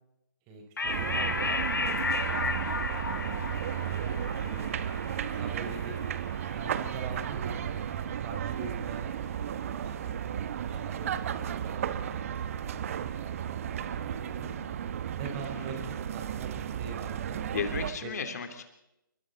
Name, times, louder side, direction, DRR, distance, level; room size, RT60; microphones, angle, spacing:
voice 1, 0.5-4.7 5.3-6.0 6.5-7.6 8.2-9.3 9.6-9.9 10.7-14.5 15.2-17.4 18.0-18.1, right 4 dB, 25° right, 4 dB, 5.0 m, -44 dB
sound 1, 0.8-7.6, left 4 dB, 70° left, 2.4 m, -34 dB
sound 2, 0.9-17.9, right 9 dB, 40° right, 1.3 m, -34 dB
voice 2, 10.0-10.4 15.5-15.7 17.5-18.6, left 6 dB, 50° left, 6 dB, 3.4 m, -36 dB
29.5 x 25.0 x 4.1 m, 0.87 s
figure-of-eight pair, 135°, 11 cm